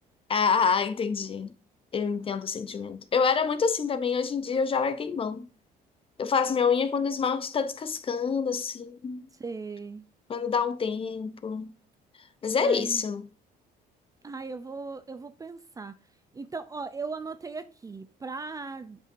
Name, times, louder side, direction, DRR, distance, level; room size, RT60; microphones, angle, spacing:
voice 1, 0.3-1.5 1.9-5.4 6.2-9.3 10.3-11.7 12.4-13.3, left 5 dB, 35° left, 0.7 m, -27 dB
voice 2, 9.4-10.0 12.6-13.0 14.2-16.0 16.3-19.0, right 4 dB, 20° right, 0.5 m, -38 dB
8.9 x 5.3 x 2.6 m
cardioid pair, 110°, 17 cm